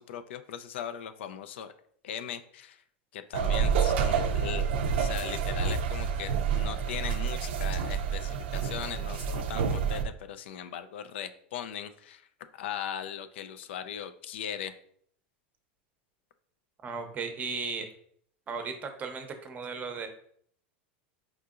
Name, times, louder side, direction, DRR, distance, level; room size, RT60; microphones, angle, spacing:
voice 1, 0.0-1.7 2.0-2.8 3.1-12.3 12.5-14.7, left 9 dB, 80° left, 11 dB, 0.4 m, -39 dB
sound 1, 3.3-10.0, right 6 dB, 75° right, 0.4 m, -28 dB
voice 2, 16.8-17.9 18.5-20.1, right 5 dB, 25° right, 6 dB, 0.7 m, -36 dB
4.8 x 2.7 x 2.4 m, 0.63 s
hypercardioid pair, 115°, 6 cm